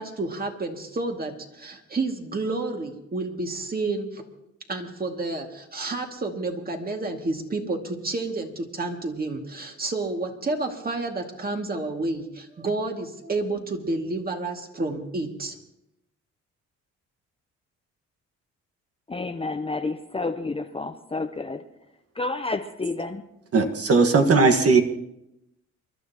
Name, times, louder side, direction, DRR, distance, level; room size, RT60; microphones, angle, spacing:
voice 1, 0.0-4.2 4.7-15.6, right 2 dB, 30° right, 3 dB, 2.2 m, -30 dB
voice 2, 19.1-21.6 22.2-23.2, left 3 dB, 20° left, 7 dB, 0.8 m, -30 dB
voice 3, 23.5-24.8, right 4 dB, 50° right, 6 dB, 1.6 m, -18 dB
28.0 x 12.0 x 3.0 m, 0.84 s
cardioid pair, 90°, 30 cm